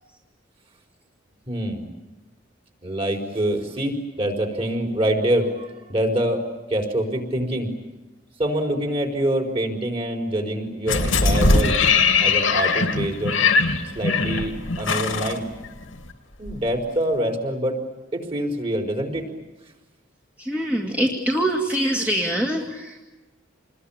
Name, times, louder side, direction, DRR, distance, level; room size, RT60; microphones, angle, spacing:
voice 1, 1.5-1.9 2.8-6.4 6.7-7.7 8.4-11.8 12.2-13.5 13.9-15.4 16.4-17.8 18.1-19.3, right 1 dB, 30° right, 3 dB, 4.6 m, -25 dB
sound 1, 10.9-16.1 16.5-16.6, left 4 dB, 85° left, 2.8 m, -20 dB
voice 2, 20.4-23.0, right 1 dB, 5° right, -2 dB, 2.2 m, -24 dB
28.0 x 21.5 x 8.8 m, 1.2 s
head